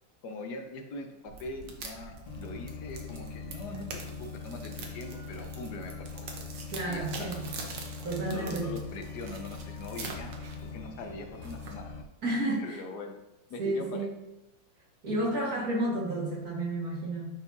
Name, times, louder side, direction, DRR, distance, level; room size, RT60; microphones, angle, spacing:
voice 1, 0.2-6.3 6.8-7.5 8.3-10.3 10.6-12.0 12.6-13.1 13.5-14.1, left 2 dB, 65° left, 4 dB, 1.2 m, -42 dB
sound 1, 1.3-12.1, right 3 dB, 65° right, 1.5 m, -45 dB
sound 2, 2.2-12.0, left 5 dB, 85° left, 1.5 m, -42 dB
voice 2, 6.7-7.4 8.0-8.7 12.2-12.8 13.6-14.1 15.0-17.3, right 1 dB, 50° right, -5 dB, 2.1 m, -31 dB
9.7 x 4.4 x 2.7 m, 0.91 s
omnidirectional pair, 2.1 m